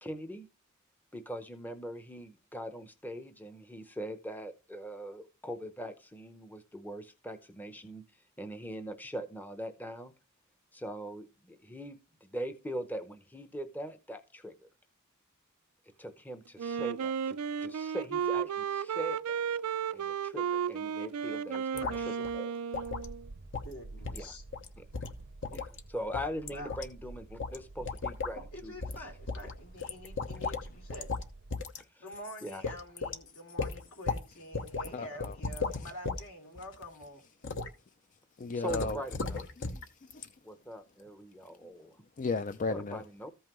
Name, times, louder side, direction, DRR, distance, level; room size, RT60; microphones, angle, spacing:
voice 1, 0.0-0.5 1.1-10.1 10.7-14.7 16.0-19.4 19.9-22.6 24.1-24.4 24.8-24.9 25.5-25.6 25.9-29.1 31.9-32.0 32.4-32.6 38.5-39.5 40.4-42.0 42.7-43.3, equal, 10° left, 0.7 m, -41 dB
Wind instrument woodwind instrument, 16.6-23.3, right 7 dB, 85° right, 0.4 m, -34 dB
voice 2, 21.7-22.3 23.6-24.4 25.5-25.6 26.5-26.8 28.3-31.1 32.0-37.2, equal, 75° left, 3.2 m, -47 dB
sound 1, 21.8-22.0 22.2-22.3 22.7-23.1 23.5-23.7 24.0-24.3 24.5-24.7 24.9-25.8 26.1-26.9 27.4-27.6 27.9-28.3 28.8-29.0 29.3-30.6 30.9-31.3 31.5-31.8 32.1-32.2 32.6-33.2 33.6-34.2 34.5-34.9 35.2-36.2 36.6-36.8 37.4-37.7 38.7-39.8 40.1-40.2, left 4 dB, 60° left, 1.0 m, -35 dB
sound 2, 22.8-31.5, right 2 dB, 50° right, 0.7 m, -50 dB
voice 3, 34.9-35.3 38.4-39.0 39.6-40.3 42.2-43.0, left 4 dB, 35° left, 0.4 m, -35 dB
14.5 x 5.5 x 3.0 m
head